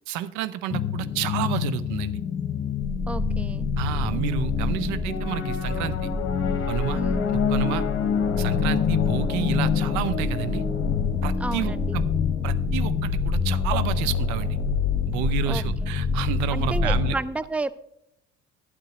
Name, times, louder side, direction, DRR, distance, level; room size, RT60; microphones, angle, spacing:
voice 1, 0.1-2.1 3.8-6.1 6.7-7.0 7.3-7.9 8.4-10.6 11.2-12.0 12.4-14.6 15.1-17.2, right 11 dB, 55° right, 15 dB, 0.7 m, -30 dB
sound 1, 0.7-17.1, left 8 dB, 35° left, 1.2 m, -27 dB
sound 2, 2.8-17.0, left 1 dB, 25° right, 2.7 m, -30 dB
voice 2, 3.1-3.7 6.9-7.2 11.4-12.0 15.5-15.6 16.5-17.7, right 2 dB, 5° right, 16 dB, 0.4 m, -31 dB
12.0 x 9.9 x 3.0 m, 0.78 s
figure-of-eight pair, 55°, 35 cm